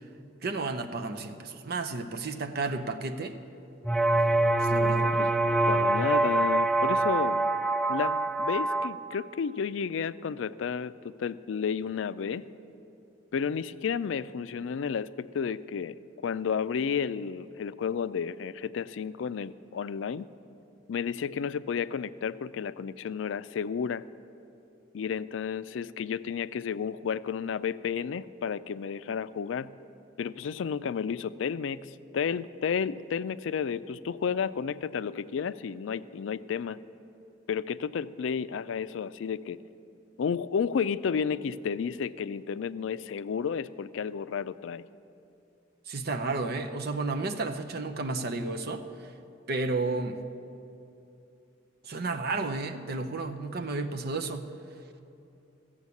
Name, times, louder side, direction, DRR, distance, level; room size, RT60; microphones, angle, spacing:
voice 1, 0.4-3.3 4.6-5.3 45.9-49.1 49.5-50.2 51.8-54.5, right 3 dB, 55° right, 7 dB, 0.7 m, -32 dB
sound 1, 3.8-8.9, right 2 dB, 5° left, 0.3 m, -25 dB
voice 2, 4.9-7.5 7.9-12.5 13.3-20.3 20.9-24.0 24.9-29.7 30.2-36.8 37.5-39.6 40.2-44.8, left 6 dB, 85° left, 15 dB, 0.4 m, -32 dB
15.5 x 7.2 x 8.3 m, 2.7 s
head